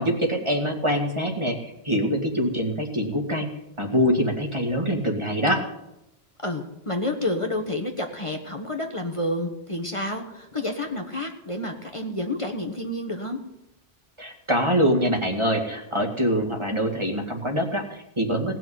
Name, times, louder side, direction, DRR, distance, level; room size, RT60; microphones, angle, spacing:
voice 1, 0.0-3.5 3.8-5.6 14.2-18.6, equal, 30° right, 3 dB, 2.1 m, -24 dB
voice 2, 6.4-13.4, left 1 dB, 30° left, 3 dB, 1.3 m, -29 dB
18.0 x 6.3 x 9.4 m, 0.87 s
omnidirectional pair, 1.0 m